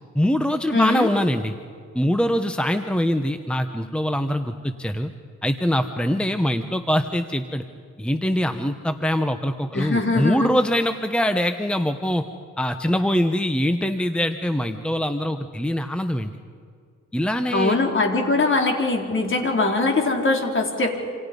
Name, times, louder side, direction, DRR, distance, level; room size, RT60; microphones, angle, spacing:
voice 1, 0.1-1.5 1.9-5.1 5.4-7.6 8.0-12.2 12.6-16.3 17.1-17.8, equal, 5° left, 8 dB, 1.1 m, -23 dB
voice 2, 0.7-1.1 9.7-10.5 17.5-21.0, left 3 dB, 40° left, 2 dB, 4.3 m, -21 dB
28.0 x 27.0 x 5.4 m, 2.2 s
cardioid pair, 100°, 31 cm